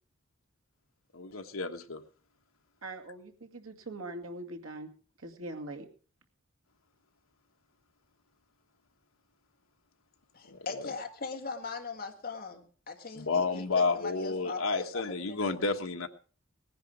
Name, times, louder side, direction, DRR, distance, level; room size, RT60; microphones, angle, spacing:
voice 1, 1.1-2.0 10.5-10.8 13.1-16.1, left 3 dB, 75° left, 5 dB, 1.3 m, -31 dB
voice 2, 2.8-4.9 5.2-5.9, right 2 dB, 80° right, 4 dB, 2.2 m, -42 dB
voice 3, 10.3-15.4, left 4 dB, 45° left, 3 dB, 2.0 m, -40 dB
19.0 x 10.5 x 5.1 m, 0.40 s
head